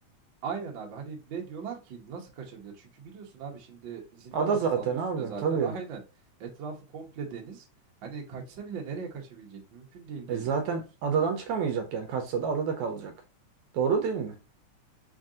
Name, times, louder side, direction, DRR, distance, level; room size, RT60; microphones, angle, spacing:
voice 1, 0.4-6.0 6.4-7.7 8.0-10.8, right 6 dB, 60° right, 1.2 m, -39 dB
voice 2, 4.3-5.7 10.3-13.1 13.7-14.4, right 6 dB, 80° right, 1.8 m, -28 dB
4.7 x 2.6 x 3.6 m
omnidirectional pair, 3.6 m